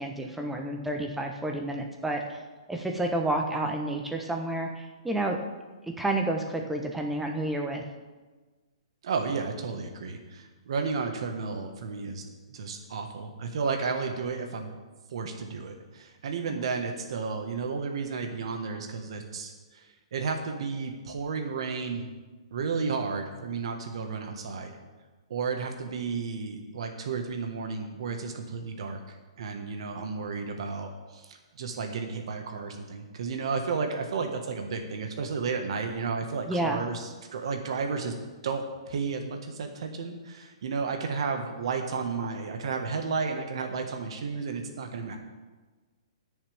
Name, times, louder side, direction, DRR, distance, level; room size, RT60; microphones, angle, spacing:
voice 1, 0.0-2.4 2.7-5.4 6.0-7.8 16.5-16.6 36.5-36.8, right 1 dB, 5° right, 2 dB, 1.0 m, -30 dB
voice 2, 9.0-14.7 15.1-22.1 22.5-24.8 25.3-38.1 38.4-45.2, right 5 dB, 60° right, 4 dB, 1.5 m, -32 dB
21.5 x 7.2 x 3.5 m, 1.3 s
hypercardioid pair, 160°, 3 cm